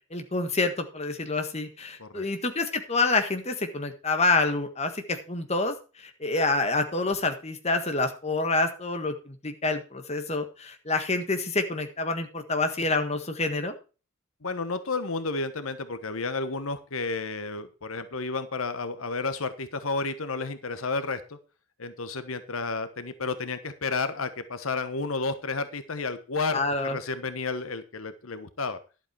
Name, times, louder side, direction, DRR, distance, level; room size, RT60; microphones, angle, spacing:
voice 1, 0.1-13.7 26.5-27.0, left 3 dB, 30° left, 6 dB, 1.7 m, -27 dB
voice 2, 14.4-21.4 21.8-28.8, left 3 dB, 85° left, 11 dB, 1.3 m, -31 dB
11.5 x 8.1 x 4.6 m, 0.34 s
head